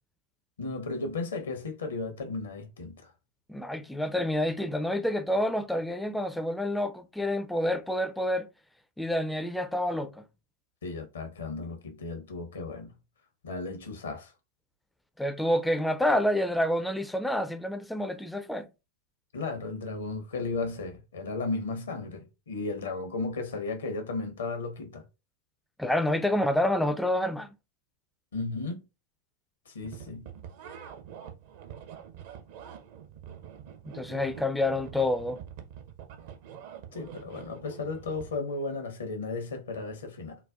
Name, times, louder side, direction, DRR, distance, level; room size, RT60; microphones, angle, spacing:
voice 1, 0.6-3.0 10.8-12.9 13.4-14.3 19.3-25.0 28.3-28.8 29.7-30.3 36.9-40.4, left 3 dB, 65° left, 0.7 m, -35 dB
voice 2, 3.5-8.5 9.0-10.2 15.2-18.7 25.8-27.5 33.9-35.4, left 1 dB, 5° left, 0.4 m, -28 dB
sound 1, 29.8-38.4, right 8 dB, 50° right, 0.6 m, -46 dB
4.0 x 2.2 x 2.4 m
figure-of-eight pair, 90°, 0 cm